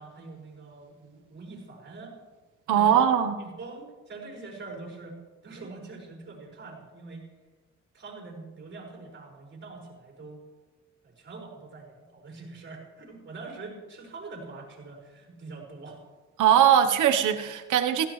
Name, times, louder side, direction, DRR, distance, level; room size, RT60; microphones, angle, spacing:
voice 1, 0.0-2.1 2.7-3.0 3.4-5.2 5.4-7.2 7.9-10.4 11.0-16.0, right 3 dB, 40° right, 0 dB, 5.6 m, -44 dB
voice 2, 2.7-3.3 16.4-18.1, right 9 dB, 80° right, 8 dB, 1.1 m, -20 dB
16.5 x 15.0 x 3.2 m, 1.2 s
cardioid pair, 90°, 30 cm